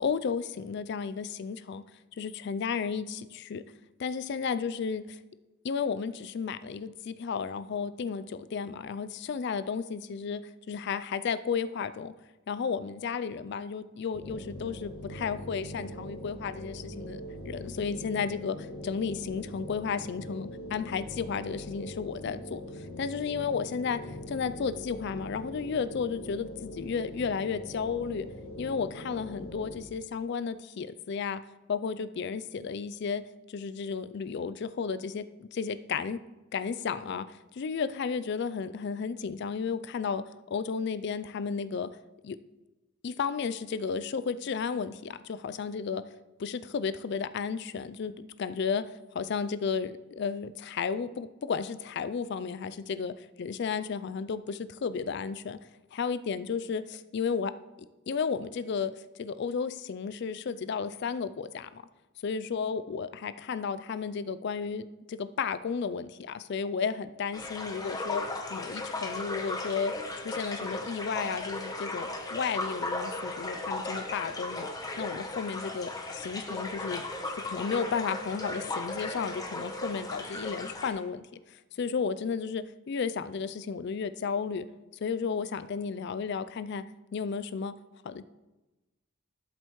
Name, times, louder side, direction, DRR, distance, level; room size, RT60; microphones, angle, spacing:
voice 1, 0.0-1.8 2.2-3.6 4.0-5.2 5.6-10.4 10.7-12.1 12.5-22.6 23.0-28.3 28.6-31.4 31.7-33.2 33.5-36.2 36.5-41.9 42.2-42.4 43.0-46.0 46.4-48.9 49.1-55.6 55.9-57.5 58.1-58.9 59.2-61.8 62.2-68.2 68.5-69.9 70.2-74.7 75.0-84.7 85.0-86.8 87.1-87.7 88.0-88.3, left 6 dB, 50° left, 14 dB, 0.3 m, -33 dB
sound 1, 14.1-29.8, left 1 dB, 75° left, 3.3 m, -42 dB
sound 2, 67.3-80.9, left 2 dB, 15° left, 0.9 m, -36 dB
12.5 x 7.7 x 3.1 m, 1.1 s
head